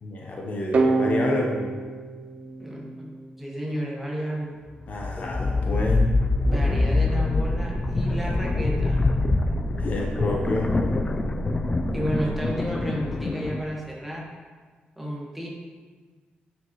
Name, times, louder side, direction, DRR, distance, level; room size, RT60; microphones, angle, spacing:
voice 1, 0.0-1.8 4.9-6.1 9.7-10.7, left 2 dB, 50° left, 0 dB, 0.8 m, -28 dB
sound 1, 0.7-3.5, right 3 dB, 45° right, 0.6 m, -26 dB
voice 2, 2.6-3.1 3.4-4.5 6.5-9.1 11.9-14.3 15.0-15.5, equal, 5° right, -4 dB, 1.5 m, -31 dB
sound 2, 4.8-13.6, left 3 dB, 25° left, 0.3 m, -25 dB
sound 3, 7.3-12.5, right 2 dB, 10° left, 1.7 m, -34 dB
9.4 x 5.2 x 3.1 m, 1.5 s
wide cardioid pair, 135°, 3 cm